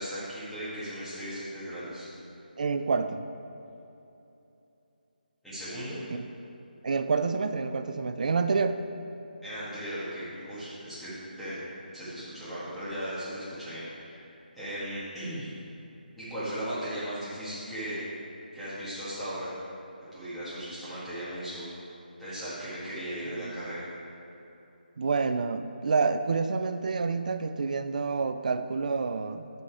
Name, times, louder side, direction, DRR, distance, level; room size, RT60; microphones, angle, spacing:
voice 1, 0.0-2.1 5.4-6.0 9.4-11.6 11.9-15.5 16.2-18.0 18.5-19.5 20.1-21.7 22.2-23.8, equal, ahead, -15 dB, 1.9 m, -37 dB
voice 2, 2.6-3.2 6.1-6.3 6.8-8.8 23.3-23.5 25.0-29.5, right 4 dB, 50° right, 9 dB, 0.5 m, -28 dB
9.0 x 5.7 x 4.8 m, 2.9 s
figure-of-eight pair, 165°, 5 cm